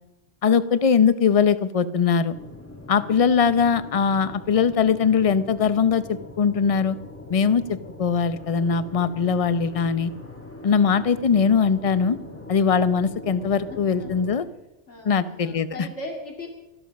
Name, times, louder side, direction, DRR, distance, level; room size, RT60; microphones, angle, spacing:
voice 1, 0.4-2.4 2.9-7.0 7.3-10.1 10.6-12.2 12.5-14.5 15.0-15.9, left 6 dB, 40° left, 14 dB, 0.6 m, -21 dB
sound 1, 2.3-14.4, left 2 dB, 10° left, 1.6 m, -42 dB
voice 2, 13.7-14.1 14.9-16.5, left 2 dB, 70° left, 2 dB, 2.7 m, -39 dB
18.0 x 13.5 x 5.2 m, 0.96 s
omnidirectional pair, 1.2 m